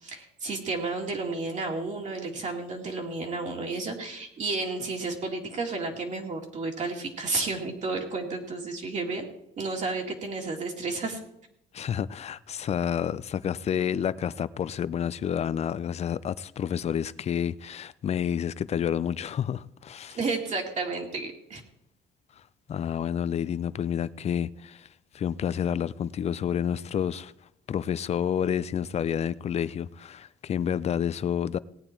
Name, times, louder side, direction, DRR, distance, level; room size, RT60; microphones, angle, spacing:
voice 1, 0.0-9.3 9.6-11.2 20.1-21.6, right 3 dB, 45° right, 2.4 m, -32 dB
voice 2, 11.7-20.2 22.7-24.9 25.1-27.3 27.7-31.6, left 8 dB, 40° left, 0.5 m, -29 dB
18.0 x 8.8 x 4.5 m
cardioid pair, 110°, 17 cm